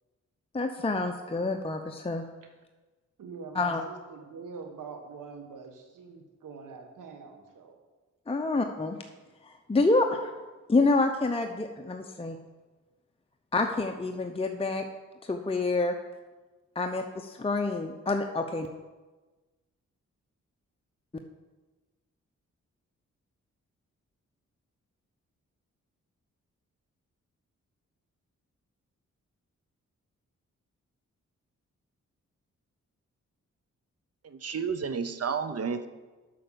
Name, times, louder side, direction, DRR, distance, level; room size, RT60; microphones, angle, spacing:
voice 1, 0.5-2.2 3.5-3.8 8.3-9.0 9.4-10.3 10.7-12.4 13.5-14.9 15.2-15.9 16.7-18.7, left 3 dB, 20° left, 0.7 m, -27 dB
voice 2, 3.2-7.8, right 5 dB, 85° right, 1.3 m, -44 dB
voice 3, 34.2-35.9, right 6 dB, 50° right, 0.8 m, -31 dB
7.7 x 5.7 x 6.9 m
cardioid pair, 55°, 31 cm